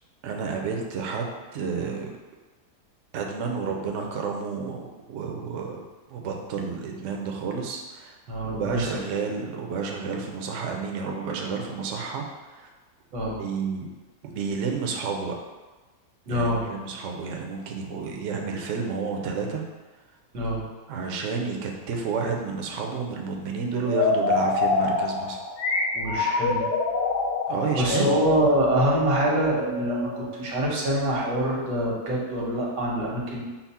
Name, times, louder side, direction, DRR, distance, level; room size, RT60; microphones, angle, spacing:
voice 1, 0.2-1.3 1.5-2.1 3.1-5.8 6.1-8.2 8.4-12.7 13.4-13.9 14.2-15.4 16.3-19.6 20.9-25.4 27.5-28.2, right 5 dB, 65° right, 2 dB, 0.8 m, -30 dB
voice 2, 8.3-8.9 13.1-13.4 16.3-16.6 20.3-20.6 25.9-26.6 27.7-33.4, right 1 dB, 90° right, -3 dB, 1.6 m, -25 dB
sound 1, 23.8-30.5, left 3 dB, 90° left, 1.2 m, -26 dB
5.7 x 2.1 x 4.1 m, 1.2 s
omnidirectional pair, 1.7 m